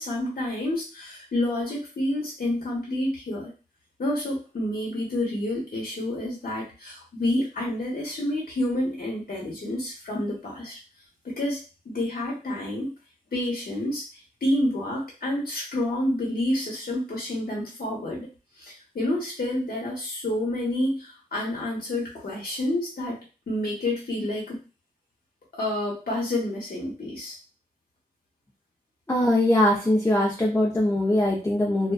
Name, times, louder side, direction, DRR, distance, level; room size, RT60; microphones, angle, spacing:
voice 1, 0.0-3.5 4.0-10.8 11.2-12.9 13.3-14.0 14.4-18.3 18.6-23.2 23.5-24.6 25.6-27.3, left 1 dB, 70° left, -3 dB, 1.0 m, -29 dB
voice 2, 29.1-31.9, left 1 dB, 15° left, -4 dB, 0.5 m, -22 dB
2.5 x 2.2 x 2.2 m, 0.32 s
wide cardioid pair, 80°, 16 cm